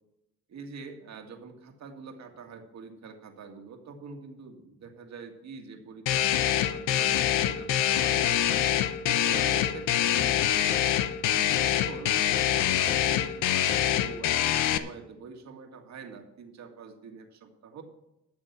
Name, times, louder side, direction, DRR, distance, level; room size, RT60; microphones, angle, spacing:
voice 1, 0.5-8.7 9.0-11.0 11.4-17.8, right 5 dB, 65° right, 4 dB, 2.0 m, -45 dB
sound 1, 6.1-14.8, left 11 dB, 90° left, 0.8 m, -25 dB
12.0 x 7.1 x 5.8 m, 0.90 s
cardioid pair, 90°, 30 cm